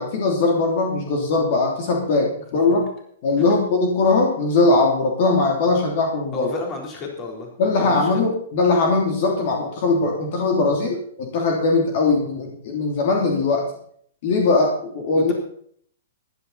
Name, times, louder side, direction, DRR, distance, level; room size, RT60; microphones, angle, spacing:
voice 1, 0.0-2.9 3.2-6.5 7.6-13.6 14.2-15.3, left 3 dB, 50° left, 0 dB, 3.2 m, -20 dB
voice 2, 6.3-7.5 7.8-8.1 15.1-15.3, left 2 dB, 25° left, 1 dB, 3.8 m, -32 dB
15.0 x 11.5 x 4.2 m, 0.62 s
hypercardioid pair, 150°, 0 cm